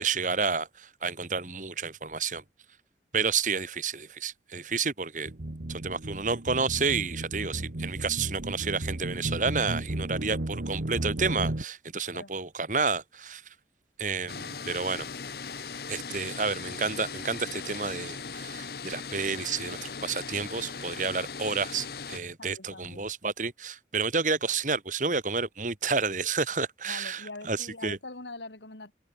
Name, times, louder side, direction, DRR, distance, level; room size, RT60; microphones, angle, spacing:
voice 1, 0.0-2.4 3.1-5.3 5.7-13.5 14.0-15.1 15.9-28.0, right 4 dB, 45° right, 2.0 m, -30 dB
sound 1, 5.3-11.6, right 1 dB, 65° right, 1.4 m, -34 dB
sound 2, 14.3-22.2, left 5 dB, 60° left, 1.2 m, -39 dB
voice 2, 22.4-23.1 26.9-28.9, left 2 dB, 85° left, 3.4 m, -43 dB
head